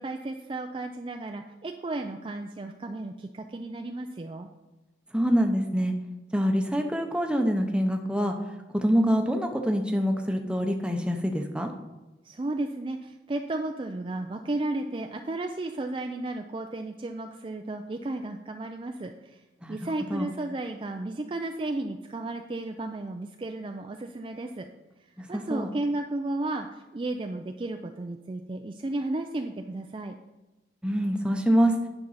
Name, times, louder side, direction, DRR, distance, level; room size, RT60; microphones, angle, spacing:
voice 1, 0.0-4.5 12.2-19.4 19.7-24.7 25.3-30.1, right 2 dB, 30° right, 4 dB, 0.4 m, -33 dB
voice 2, 5.1-5.9 6.3-8.3 8.7-11.7 19.6-19.8 20.1-20.3 25.2-25.7 30.8-31.8, equal, 5° right, 4 dB, 0.8 m, -25 dB
10.5 x 6.0 x 4.1 m, 1.1 s
head